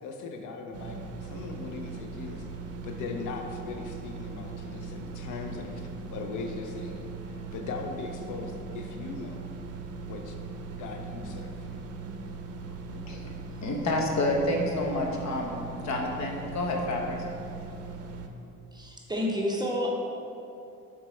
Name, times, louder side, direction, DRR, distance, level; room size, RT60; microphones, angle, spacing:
voice 1, 0.0-9.5 10.0-10.4 10.8-11.7 12.9-13.2, left 4 dB, 80° left, 4 dB, 0.7 m, -39 dB
sound 1, 0.7-18.3, right 4 dB, 55° right, 0.6 m, -39 dB
voice 2, 13.6-17.2, left 1 dB, 65° left, 1 dB, 1.1 m, -29 dB
voice 3, 18.7-19.9, left 1 dB, 15° right, -2 dB, 0.8 m, -29 dB
6.3 x 4.3 x 4.4 m, 2.7 s
cardioid pair, 90°, 30 cm